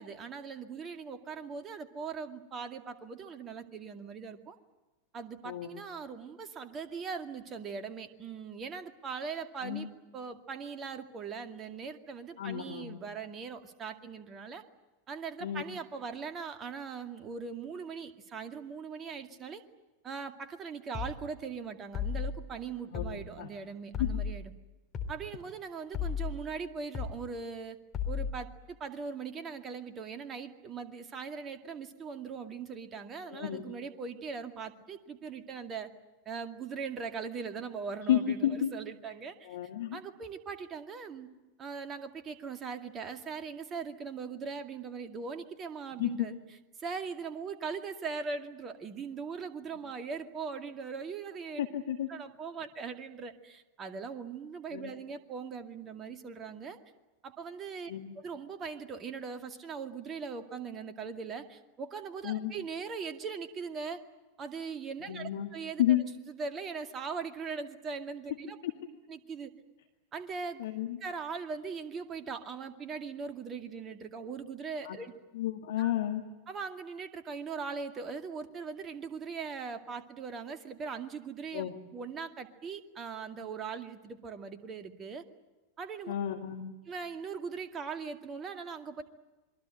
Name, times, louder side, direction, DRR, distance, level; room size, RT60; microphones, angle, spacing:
voice 1, 0.0-4.6 5.1-14.6 15.1-19.6 20.0-24.5 25.1-27.8 28.1-35.9 36.3-39.6 39.9-41.3 41.6-46.4 46.8-51.6 52.1-56.8 57.2-57.9 58.2-64.0 64.4-66.0 66.3-68.6 69.1-69.5 70.1-70.6 71.0-75.1 75.8-75.9 76.5-85.2 85.8-86.1 86.8-89.0, right 5 dB, 25° right, 7 dB, 2.2 m, -40 dB
voice 2, 12.4-13.0 15.4-15.7 22.9-23.5 24.0-24.1 33.3-33.7 38.1-38.7 39.5-40.0 46.0-46.3 51.7-52.1 54.7-54.9 57.9-58.2 62.2-62.5 65.1-65.5 65.8-66.0 68.6-68.7 70.6-71.0 74.8-75.0 75.3-76.2 81.5-81.7 86.1-86.7, left 11 dB, 55° left, 5 dB, 1.9 m, -31 dB
sound 1, 20.9-21.2 21.9-22.3 22.9-23.2 23.9-24.3 24.9-25.2 25.9-26.3 26.9-27.2 27.9-28.3, left 7 dB, 25° left, 3.8 m, -33 dB
27.0 x 23.0 x 9.0 m, 1.1 s
figure-of-eight pair, 90°, 0 cm